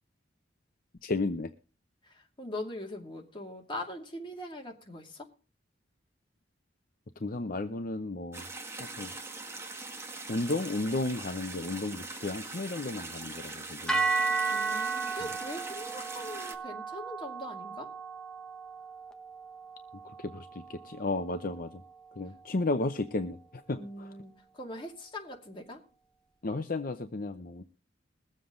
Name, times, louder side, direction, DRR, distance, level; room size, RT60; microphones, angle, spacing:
voice 1, 1.0-1.5 7.2-8.5 8.8-9.1 10.3-14.0 20.0-21.8 22.2-24.1 26.4-27.6, left 2 dB, 50° left, 0.7 m, -33 dB
voice 2, 2.1-5.3 14.5-17.9 23.7-25.8, left 1 dB, 25° left, 2.5 m, -41 dB
sound 1, 8.3-16.5, right 3 dB, 15° right, 1.5 m, -42 dB
sound 2, 13.9-22.1, right 4 dB, 5° left, 1.0 m, -35 dB
22.0 x 7.6 x 3.8 m
head